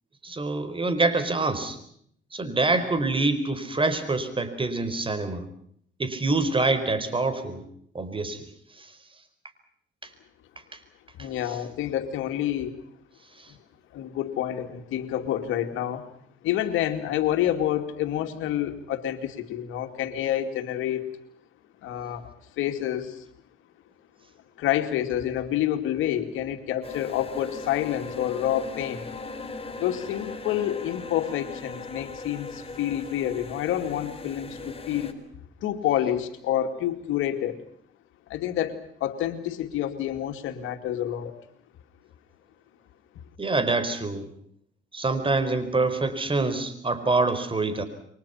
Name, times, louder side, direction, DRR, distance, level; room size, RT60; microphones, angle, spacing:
voice 1, 0.2-1.8 2.3-5.5 6.0-7.6 7.9-8.5 8.8-8.9 43.4-44.3 44.9-47.8, right 3 dB, 25° right, 12 dB, 4.7 m, -25 dB
voice 2, 11.2-12.8 13.5-13.6 13.9-16.0 16.4-21.1 21.8-22.3 22.6-23.2 24.6-29.1 29.8-35.1 35.6-37.6 38.3-41.3, left 11 dB, 90° left, 7 dB, 2.6 m, -28 dB
sound 1, 26.8-35.1, left 3 dB, 30° left, 4.0 m, -39 dB
29.5 x 23.5 x 5.8 m, 0.67 s
cardioid pair, 90°, 20 cm